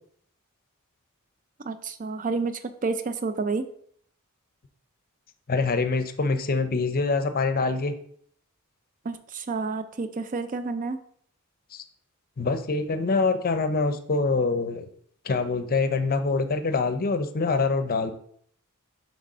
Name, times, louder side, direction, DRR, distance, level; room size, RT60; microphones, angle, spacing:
voice 1, 1.6-3.7 9.0-11.0, right 4 dB, 40° right, 11 dB, 0.5 m, -30 dB
voice 2, 5.5-7.9 11.7-11.8 12.4-14.9 15.2-18.1, left 4 dB, 45° left, 9 dB, 0.6 m, -25 dB
6.4 x 3.4 x 5.4 m, 0.63 s
head